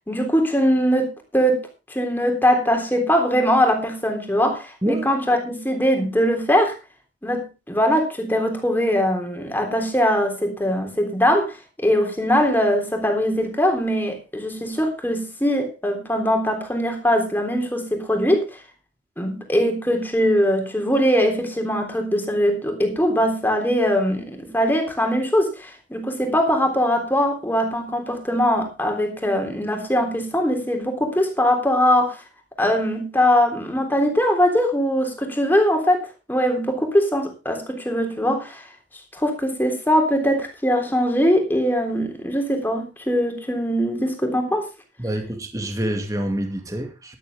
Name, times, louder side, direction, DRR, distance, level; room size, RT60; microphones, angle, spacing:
voice 1, 0.1-1.6 1.9-6.8 7.2-18.4 19.2-32.2 32.6-38.6 39.1-44.7, equal, 10° left, 3.5 m, -21 dB
voice 2, 45.0-47.2, right 1 dB, 20° right, 2.2 m, -26 dB
13.5 x 12.5 x 3.6 m
head